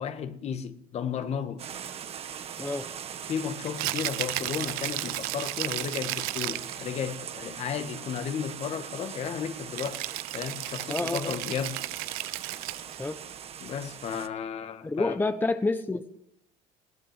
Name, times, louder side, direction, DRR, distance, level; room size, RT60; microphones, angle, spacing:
voice 1, 0.0-1.7 3.3-10.1 10.3-11.8 13.6-15.2, left 7 dB, 45° left, 1.9 m, -34 dB
sound 1, 1.6-14.3, right 8 dB, 40° right, 1.6 m, -41 dB
Rattle (instrument), 3.7-6.8 9.8-13.0, right 19 dB, 85° right, 0.8 m, -34 dB
voice 2, 10.9-11.4 13.0-13.2 14.8-16.1, left 3 dB, 15° left, 1.1 m, -28 dB
21.0 x 17.0 x 9.2 m
cardioid pair, 120°, 15 cm